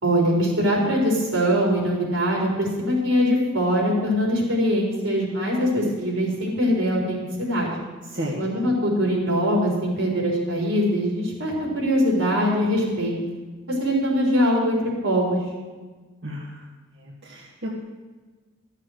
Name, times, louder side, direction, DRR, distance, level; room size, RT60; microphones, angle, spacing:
voice 1, 0.0-7.7 8.4-13.1 13.8-15.4, equal, 85° right, -3 dB, 4.4 m, -22 dB
voice 2, 17.0-17.8, equal, 60° right, -4 dB, 1.5 m, -32 dB
13.5 x 7.4 x 6.5 m, 1.3 s
head